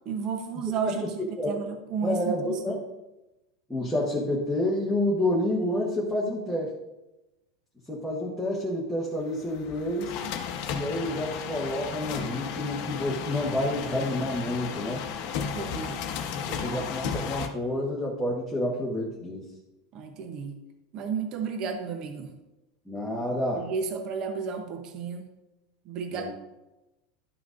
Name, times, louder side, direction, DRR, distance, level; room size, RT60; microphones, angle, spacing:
voice 1, 0.1-2.6 15.5-16.0 16.5-16.8 19.9-20.6 20.9-22.3 23.6-25.3 25.9-26.3, right 6 dB, 30° right, 6 dB, 0.7 m, -32 dB
voice 2, 0.7-1.1 1.4-1.6 2.0-2.8 3.7-6.7 7.9-10.1 10.7-15.1 16.5-19.5 22.9-23.7 26.1-26.3, left 1 dB, ahead, -6 dB, 1.0 m, -29 dB
sound 1, 9.3-17.5, left 7 dB, 45° left, 0.9 m, -34 dB
12.0 x 5.9 x 2.5 m, 0.98 s
supercardioid pair, 170°, 2 cm